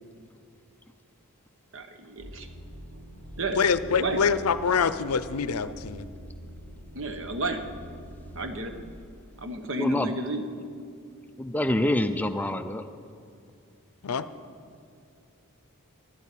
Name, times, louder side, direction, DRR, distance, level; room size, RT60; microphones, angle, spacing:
voice 1, 1.7-2.5 3.4-4.2 6.9-7.7 8.3-8.7 9.4-10.5, right 2 dB, 60° right, 7 dB, 1.0 m, -32 dB
sound 1, 2.2-8.9, equal, 80° right, 2.8 m, -45 dB
voice 2, 3.6-6.1 14.0-14.2, left 6 dB, 80° left, 14 dB, 0.5 m, -25 dB
voice 3, 9.7-10.1 11.4-12.8, left 1 dB, 5° left, 9 dB, 0.3 m, -26 dB
12.0 x 8.6 x 8.4 m, 2.4 s
head